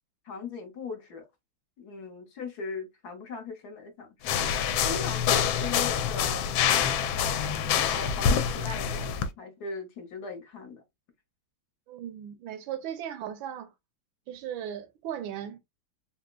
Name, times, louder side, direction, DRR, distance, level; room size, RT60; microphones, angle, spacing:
voice 1, 0.2-1.2 1.8-6.5 7.9-10.8, left 4 dB, 60° left, 1.2 m, -39 dB
sound 1, 4.2-9.3, left 8 dB, 80° left, 1.3 m, -26 dB
voice 2, 11.9-13.7 14.3-15.6, right 10 dB, 80° right, 1.4 m, -37 dB
3.8 x 2.9 x 2.2 m
omnidirectional pair, 2.2 m